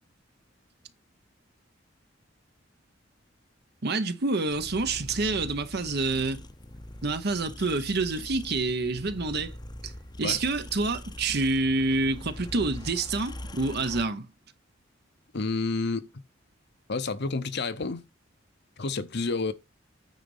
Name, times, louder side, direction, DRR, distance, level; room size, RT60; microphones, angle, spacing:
voice 1, 3.8-6.4 7.0-9.5 9.8-9.9 10.2-14.3, right 3 dB, 55° right, 1.0 m, -27 dB
sound 1, 4.5-14.0, left 1 dB, 20° left, 0.7 m, -42 dB
voice 2, 15.3-16.1 16.9-18.0 18.8-19.5, left 3 dB, 60° left, 0.9 m, -29 dB
9.3 x 4.1 x 5.5 m
head